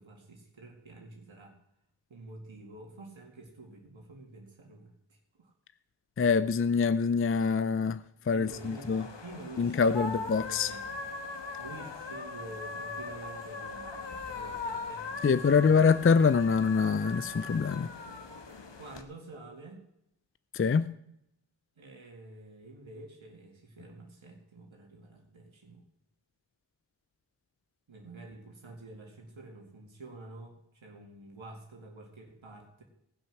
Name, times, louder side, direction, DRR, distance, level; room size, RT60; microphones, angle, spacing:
voice 1, 0.0-1.6 2.1-5.5 8.3-10.9 11.6-15.8 18.8-19.8 21.8-25.8 27.9-32.8, right 2 dB, 80° right, 2.2 m, -48 dB
voice 2, 6.2-8.0 8.3-9.0 9.6-10.7 15.2-17.9 20.5-20.9, left 5 dB, 30° left, 0.4 m, -25 dB
sound 1, 8.5-19.0, left 3 dB, 65° left, 1.4 m, -40 dB
18.5 x 6.2 x 6.1 m
wide cardioid pair, 75°, 47 cm